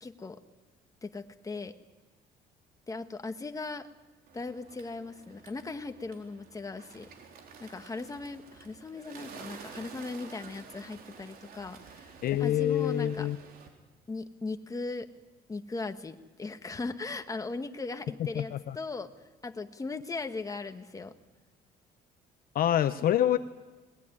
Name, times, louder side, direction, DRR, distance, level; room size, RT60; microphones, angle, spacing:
voice 1, 0.0-0.4 1.0-1.7 2.9-3.9 4.3-7.1 7.6-12.1 12.4-13.3 14.1-15.1 15.5-19.1 19.4-21.1, left 3 dB, 20° left, 7 dB, 1.7 m, -38 dB
Bird, 4.3-13.7, right 6 dB, 60° right, 4.2 m, -50 dB
voice 2, 12.2-13.4 18.3-18.8 22.5-23.4, left 11 dB, 60° left, 12 dB, 0.8 m, -26 dB
21.5 x 20.0 x 10.0 m, 1.2 s
cardioid pair, 110°, 17 cm